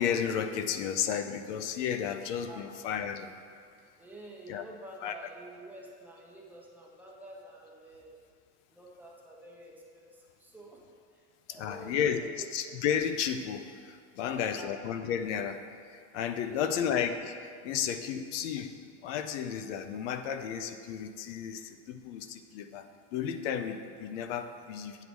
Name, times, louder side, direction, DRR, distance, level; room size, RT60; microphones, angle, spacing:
voice 1, 0.0-3.3 4.5-4.6 5.0-5.1 11.6-12.2 12.5-25.0, left 8 dB, 80° left, 9 dB, 0.7 m, -33 dB
voice 2, 4.0-8.2 8.7-10.8 11.1-12.5 14.2-14.7 16.4-16.9, right 1 dB, 5° right, -3 dB, 0.8 m, -49 dB
8.3 x 4.7 x 7.0 m, 2.2 s
cardioid pair, 165°, 36 cm